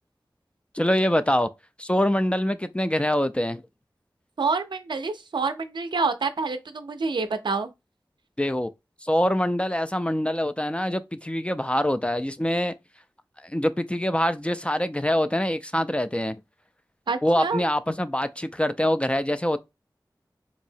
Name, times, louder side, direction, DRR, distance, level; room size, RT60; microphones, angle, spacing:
voice 1, 0.7-1.5 1.8-3.6 8.4-8.7 9.0-12.7 13.4-16.4 17.2-19.6, equal, 15° left, 0.3 m, -24 dB
voice 2, 4.4-7.7 17.1-17.6, right 4 dB, 85° right, 0.4 m, -27 dB
4.0 x 2.7 x 2.6 m
wide cardioid pair, 60°, 8 cm